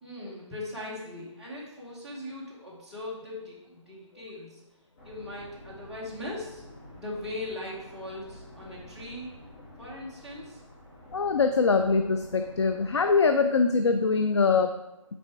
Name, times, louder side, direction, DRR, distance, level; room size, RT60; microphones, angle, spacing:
voice 1, 0.0-4.6 5.0-6.6 7.0-9.3 9.8-10.6, left 1 dB, 5° right, -9 dB, 0.9 m, -39 dB
sound 1, 5.0-13.3, left 1 dB, 20° left, 2.2 m, -49 dB
voice 2, 11.1-14.8, left 4 dB, 60° left, 7 dB, 0.5 m, -23 dB
6.7 x 4.5 x 4.5 m, 0.92 s
figure-of-eight pair, 165°, 17 cm